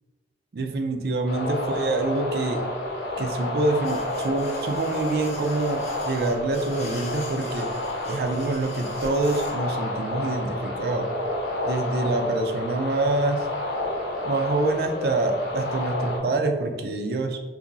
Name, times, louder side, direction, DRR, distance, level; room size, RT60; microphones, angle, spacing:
voice 1, 0.5-2.6 3.2-7.7 8.1-11.1 11.7-13.5 14.2-17.4, right 2 dB, 60° right, 5 dB, 0.4 m, -26 dB
sound 1, 1.3-16.2, left 1 dB, 80° left, 0.8 m, -30 dB
sound 2, 3.8-9.5, left 2 dB, 35° left, 0.5 m, -43 dB
2.9 x 2.4 x 3.9 m, 1.3 s
head